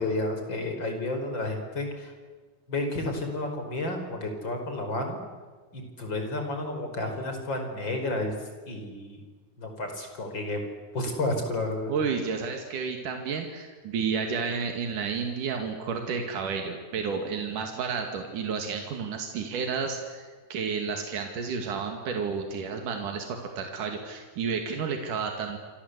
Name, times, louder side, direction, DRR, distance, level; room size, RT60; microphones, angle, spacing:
voice 1, 0.0-2.1 2.7-5.2 5.7-8.3 8.7-9.2 9.6-10.6 10.9-11.9, left 2 dB, 35° left, 5 dB, 5.6 m, -31 dB
voice 2, 11.9-25.6, right 5 dB, 85° right, 3 dB, 3.9 m, -31 dB
28.5 x 25.5 x 8.3 m, 1.4 s
omnidirectional pair, 3.5 m